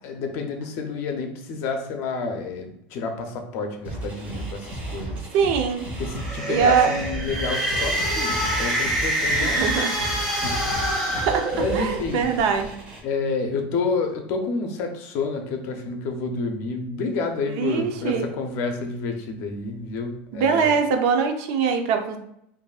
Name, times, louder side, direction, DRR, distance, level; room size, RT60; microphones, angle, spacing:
voice 1, 0.0-5.3 6.0-9.7 10.4-10.7 11.0-11.3 11.5-12.3 13.0-20.7, left 4 dB, 50° left, 5 dB, 0.6 m, -29 dB
sound 1, 3.8-13.0, right 2 dB, 30° right, 1.1 m, -34 dB
voice 2, 5.3-5.8 6.5-6.9 9.4-9.9 11.1-12.7 17.5-18.3 20.3-22.2, right 6 dB, 55° right, 5 dB, 0.5 m, -22 dB
sound 2, 6.0-12.1, equal, ahead, 1.4 m, -26 dB
5.0 x 2.6 x 2.4 m, 0.76 s
cardioid pair, 170°, 6 cm